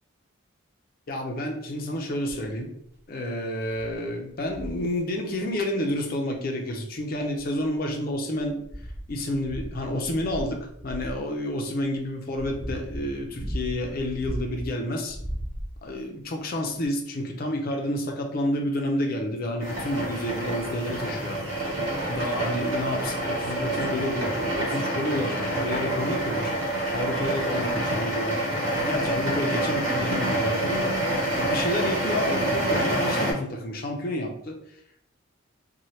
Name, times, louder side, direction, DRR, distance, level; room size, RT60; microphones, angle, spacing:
voice 1, 1.1-2.7 3.1-15.2 15.8-21.5 22.1-26.5 26.9-34.8, left 1 dB, 45° left, 2 dB, 0.5 m, -30 dB
sound 1, 2.6-2.7 3.2-3.3 3.7-4.0 4.4-4.9 6.3-6.4 7.2-7.9 8.4-11.2 12.0-14.7 15.1-16.0 16.8-16.9, equal, 10° right, 0.5 m, -36 dB
sound 2, 19.6-33.3, right 1 dB, 80° right, 1.0 m, -27 dB
2.8 x 2.2 x 3.1 m, 0.71 s
head